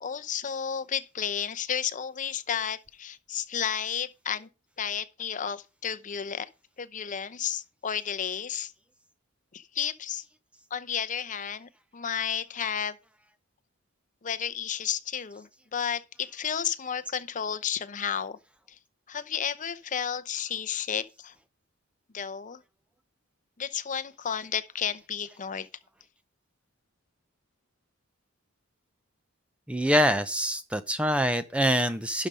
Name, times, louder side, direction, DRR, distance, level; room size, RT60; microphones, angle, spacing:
voice 1, 0.0-4.5 4.8-6.5 6.8-8.7 9.5-10.2 10.7-13.0 14.2-18.4 19.1-21.3 22.1-22.6 23.6-25.7, left 8 dB, 40° left, 0.7 m, -32 dB
voice 2, 29.7-32.3, equal, 5° right, 0.5 m, -25 dB
11.5 x 5.0 x 5.4 m
head